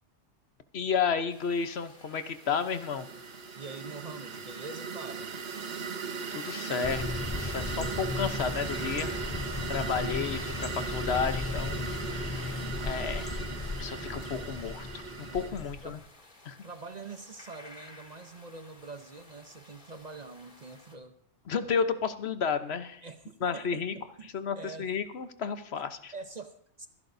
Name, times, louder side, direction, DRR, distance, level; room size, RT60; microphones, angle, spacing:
voice 1, 0.7-3.1 6.3-9.1 9.7-11.8 12.1-12.3 12.8-13.3 13.8-15.0 15.3-16.0 16.4-16.6 21.5-23.0 23.4-23.9 24.3-26.1, left 6 dB, 65° left, 10 dB, 1.1 m, -32 dB
sound 1, 1.3-21.0, left 2 dB, 45° left, 2.0 m, -54 dB
sound 2, 2.1-15.5, right 5 dB, 60° right, 1.1 m, -38 dB
voice 2, 3.6-5.4 15.5-16.0 16.6-21.1 23.0-24.9 26.1-26.9, right 3 dB, 40° right, 8 dB, 0.8 m, -45 dB
sound 3, 6.8-16.0, left 3 dB, 25° left, 0.3 m, -36 dB
26.0 x 11.0 x 2.6 m, 0.63 s
omnidirectional pair, 1.2 m